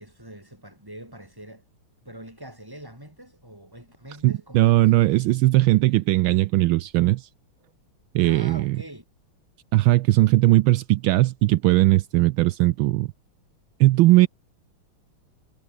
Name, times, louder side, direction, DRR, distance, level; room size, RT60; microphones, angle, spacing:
voice 1, 0.0-1.6 2.0-5.0 8.2-9.0, right 1 dB, 10° right, 5.7 m, -43 dB
voice 2, 4.2-7.3 8.1-8.8 9.7-13.1 13.8-14.3, right 17 dB, 80° right, 1.3 m, -19 dB
omnidirectional pair, 2.3 m